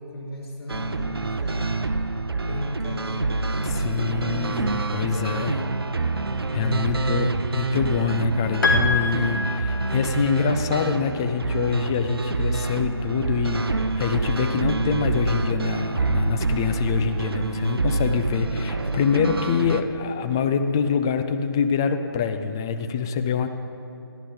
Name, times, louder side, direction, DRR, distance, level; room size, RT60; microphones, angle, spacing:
voice 1, 0.0-1.9 2.4-5.7 6.5-7.4, left 1 dB, 85° left, -1 dB, 4.4 m, -36 dB
sound 1, 0.7-19.8, right 3 dB, 70° right, 0.9 m, -26 dB
voice 2, 3.6-5.5 6.5-13.7 13.9-23.5, left 6 dB, 10° left, 7 dB, 0.3 m, -25 dB
Piano, 8.6-10.3, left 4 dB, 55° left, 2.0 m, -25 dB
29.0 x 11.5 x 3.9 m, 2.7 s
figure-of-eight pair, 150°, 13 cm